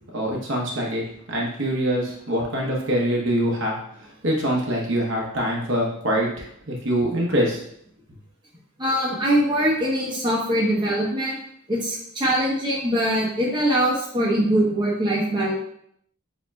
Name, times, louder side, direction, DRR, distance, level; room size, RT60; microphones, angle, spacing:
voice 1, 0.0-7.6, equal, 60° right, -2 dB, 0.9 m, -24 dB
voice 2, 8.8-11.4 11.7-15.6, right 1 dB, 20° right, -6 dB, 0.9 m, -22 dB
7.1 x 2.8 x 2.3 m, 0.70 s
head